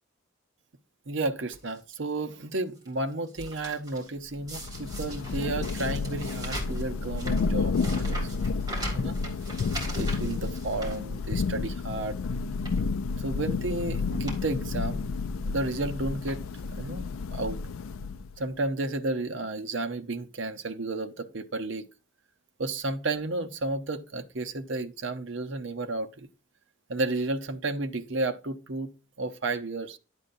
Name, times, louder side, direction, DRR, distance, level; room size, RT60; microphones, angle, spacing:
voice 1, 1.1-8.3 8.9-9.2 9.9-12.2 13.2-15.0 15.4-16.4 16.8-17.6 18.4-21.8 22.6-26.3 26.9-28.9 29.2-30.0, right 2 dB, 65° right, 0.9 m, -32 dB
sound 1, 1.5-1.9 2.5-4.1 4.5-11.6 12.0-12.1 12.5-12.9 13.7-13.8 14.1-14.4 14.7-14.8 15.7-15.9 16.3-16.8 17.5-17.6 17.8-17.9, right 1 dB, 20° right, 3.2 m, -40 dB
Thunder / Rain, 4.3-18.4, left 4 dB, 80° left, 0.4 m, -31 dB
11.5 x 8.3 x 2.6 m
head